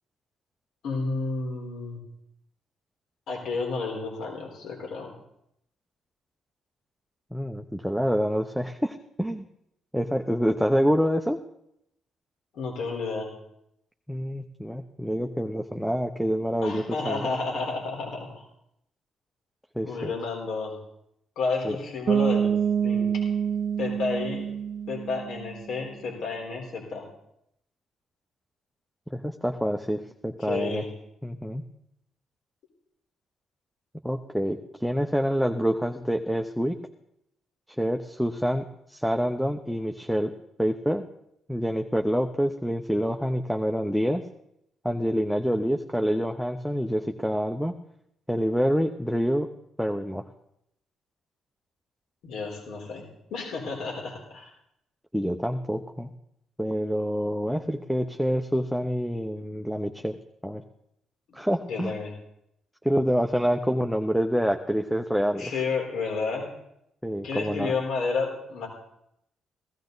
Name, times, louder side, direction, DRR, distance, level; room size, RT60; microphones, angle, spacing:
voice 1, 0.8-2.0 3.3-5.1 12.5-13.3 16.6-18.5 19.8-20.8 21.4-22.5 22.8-23.1 23.8-24.5 24.9-27.1 30.4-30.9 52.2-53.0 53.3-54.5 61.7-62.1 65.4-66.5 67.2-68.7, left 4 dB, 75° left, 0 dB, 4.0 m, -31 dB
voice 2, 7.3-9.4 9.9-11.4 14.1-17.3 19.7-20.1 21.6-21.8 29.1-30.8 31.2-31.6 34.0-36.8 37.8-40.3 40.6-41.0 41.5-44.2 44.8-47.7 48.3-49.5 49.8-50.2 55.1-56.1 56.6-60.1 60.4-60.6 61.3-61.9 62.8-65.5 67.0-67.7, equal, ahead, 4 dB, 0.9 m, -27 dB
Bass guitar, 22.1-25.8, right 7 dB, 45° right, 0.4 m, -26 dB
16.0 x 14.5 x 4.0 m, 0.78 s
cardioid pair, 90°, 0 cm